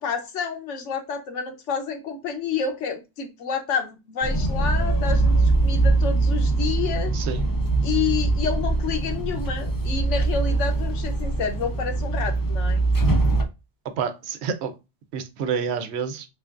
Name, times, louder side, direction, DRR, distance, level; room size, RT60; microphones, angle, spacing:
voice 1, 0.0-7.2 7.8-12.9, left 6 dB, 85° left, 1.1 m, -29 dB
sound 1, 4.2-13.4, right 2 dB, 35° left, 0.3 m, -22 dB
voice 2, 7.1-7.4 13.8-14.7 15.1-16.3, right 6 dB, 70° right, 0.9 m, -28 dB
3.6 x 3.4 x 2.4 m
omnidirectional pair, 1.2 m